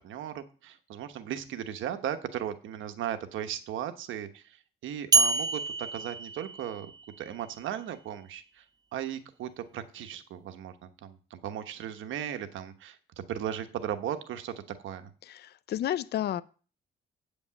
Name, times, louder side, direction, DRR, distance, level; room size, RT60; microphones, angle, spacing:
voice 1, 0.0-6.9 7.2-8.6 8.9-14.5 14.8-15.1, right 10 dB, 80° right, 1.1 m, -37 dB
sound 1, 5.1-7.2, right 3 dB, 20° right, 0.5 m, -27 dB
voice 2, 15.2-16.4, left 11 dB, 55° left, 0.5 m, -31 dB
8.5 x 5.2 x 7.3 m
cardioid pair, 90°, 20 cm